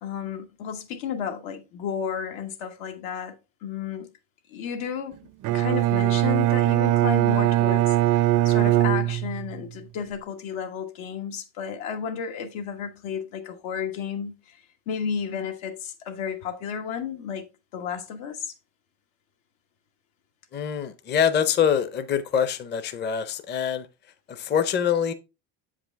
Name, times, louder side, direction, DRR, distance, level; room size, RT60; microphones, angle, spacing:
voice 1, 0.0-3.3 3.6-4.1 4.5-5.2 5.5-18.5, left 7 dB, 80° left, 1.5 m, -32 dB
Bowed string instrument, 5.4-9.6, right 14 dB, 45° right, 0.4 m, -21 dB
voice 2, 20.5-23.9 24.3-25.1, left 8 dB, 25° left, 0.6 m, -24 dB
7.5 x 5.0 x 3.3 m
cardioid pair, 115°, 47 cm